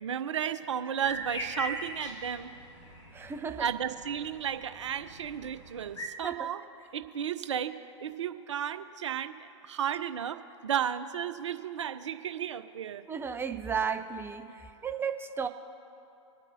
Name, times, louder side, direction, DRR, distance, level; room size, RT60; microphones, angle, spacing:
voice 1, 0.0-2.5 3.6-6.6 6.9-7.7 8.0-13.1, right 9 dB, 75° right, 11 dB, 0.6 m, -33 dB
sound 1, 1.0-6.1, equal, 85° left, 1.8 m, -41 dB
voice 2, 3.1-3.6 6.2-6.5 13.1-14.4 14.8-15.5, right 6 dB, 15° right, 8 dB, 0.6 m, -33 dB
26.5 x 9.1 x 2.6 m, 2.7 s
figure-of-eight pair, 100°, 16 cm